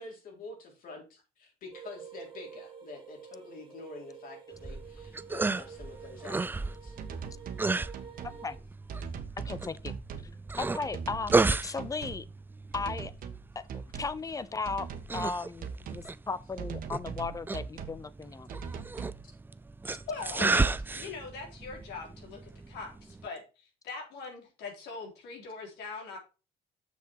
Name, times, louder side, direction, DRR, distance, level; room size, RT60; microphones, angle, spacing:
voice 1, 0.0-7.0, left 3 dB, 55° left, 4.3 m, -47 dB
sound 1, 1.7-8.6, right 7 dB, 30° right, 3.3 m, -49 dB
sound 2, 4.5-23.3, right 3 dB, 10° right, 0.4 m, -34 dB
sound 3, 7.0-7.7 7.9-8.4 8.9-10.3 10.8-11.5 11.8-12.2 12.7-13.4 13.7-14.2 14.7-15.3 15.6-16.1 16.6-18.0 18.5-19.2, right 6 dB, 55° right, 1.5 m, -40 dB
voice 2, 8.2-8.6 9.4-10.0 10.6-12.3 12.7-13.1 13.5-14.9 15.1-18.5, left 4 dB, 20° left, 0.7 m, -36 dB
voice 3, 20.1-26.2, left 4 dB, 80° left, 4.0 m, -41 dB
7.1 x 6.6 x 4.7 m
cardioid pair, 110°, 17 cm